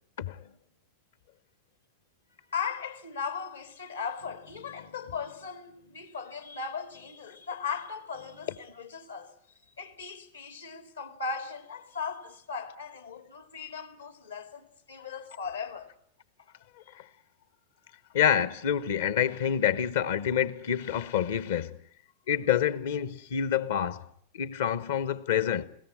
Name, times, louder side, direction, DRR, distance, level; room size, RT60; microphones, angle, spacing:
voice 1, 2.5-9.3 9.8-15.9, left 5 dB, 75° left, 2.2 m, -38 dB
voice 2, 18.1-21.8 22.3-24.1 24.3-25.6, left 9 dB, 60° left, 1.0 m, -27 dB
21.0 x 17.0 x 9.8 m
figure-of-eight pair, 90°, 0 cm